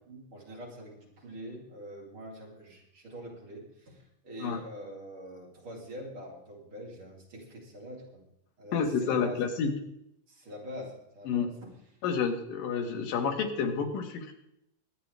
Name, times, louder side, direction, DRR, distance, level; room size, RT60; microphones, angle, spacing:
voice 1, 0.1-8.2 8.6-9.4 10.3-11.7, equal, 40° right, -3 dB, 4.3 m, -44 dB
voice 2, 8.7-9.7 11.3-11.5 12.0-14.3, left 6 dB, 85° left, 4 dB, 3.2 m, -29 dB
22.5 x 9.4 x 3.4 m, 0.81 s
omnidirectional pair, 3.8 m